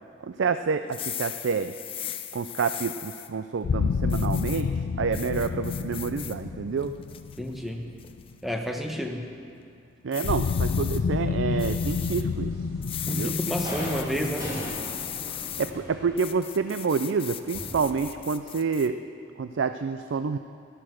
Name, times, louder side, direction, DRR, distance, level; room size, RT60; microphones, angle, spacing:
voice 1, 0.2-1.7 2.3-4.7 5.0-6.9 10.0-12.5 13.1-13.4 15.6-19.0 19.4-20.4, right 5 dB, 80° right, 10 dB, 0.4 m, -28 dB
sound 1, 0.8-3.3 4.1-4.6 5.1-6.3 6.8-7.4 8.0-8.3 10.1-11.0 11.6-12.2 12.8-15.7 16.2-18.9, left 10 dB, 30° left, 0.5 m, -37 dB
sound 2, 3.6-8.6 10.2-15.9, left 5 dB, 90° left, 0.4 m, -30 dB
voice 2, 7.4-7.9 8.4-9.3 13.1-14.5, equal, ahead, 2 dB, 1.0 m, -30 dB
sound 3, 11.5-12.2 12.5-18.1, equal, 20° right, 3.4 m, -39 dB
14.0 x 11.5 x 6.3 m, 2.4 s
head